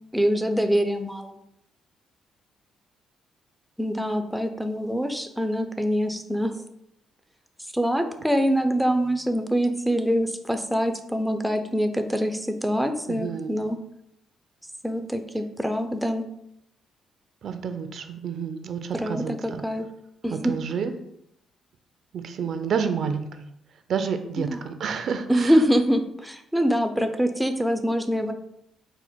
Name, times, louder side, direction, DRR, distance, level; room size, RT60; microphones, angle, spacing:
voice 1, 0.1-1.4 3.8-6.6 7.7-13.8 14.8-16.3 18.9-19.9 20.2-20.5 24.4-24.6 25.3-28.3, equal, ahead, 6 dB, 0.4 m, -24 dB
voice 2, 13.1-13.6 17.4-19.6 20.3-20.9 22.1-23.3 23.9-25.6, right 6 dB, 60° right, 8 dB, 0.4 m, -29 dB
4.2 x 2.1 x 4.3 m, 0.77 s
cardioid pair, 90°, 0 cm